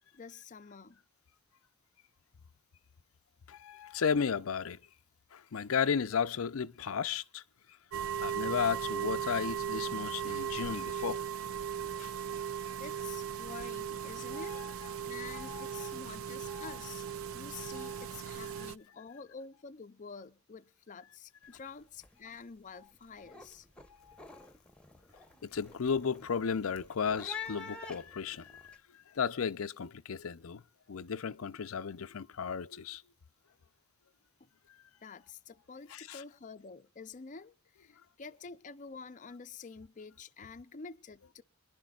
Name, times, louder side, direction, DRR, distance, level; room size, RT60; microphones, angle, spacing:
voice 1, 0.1-1.0 12.8-17.0 17.3-23.7 34.4-34.5 35.0-41.4, left 5 dB, 40° left, 0.5 m, -48 dB
voice 2, 3.5-4.8 5.3-7.4 8.2-11.2 12.0-12.1 14.3-14.7 15.3-15.9 16.5-16.8 17.7-18.1 18.5-18.7 24.0-24.5 25.4-30.6 30.9-33.0 35.9-36.2, left 6 dB, 80° left, 0.5 m, -34 dB
sound 1, 7.9-18.8, right 8 dB, 85° right, 0.6 m, -37 dB
sound 2, 21.4-21.7 22.0-22.4 22.8-28.8, left 4 dB, 5° left, 1.0 m, -48 dB
25.0 x 11.0 x 2.4 m
head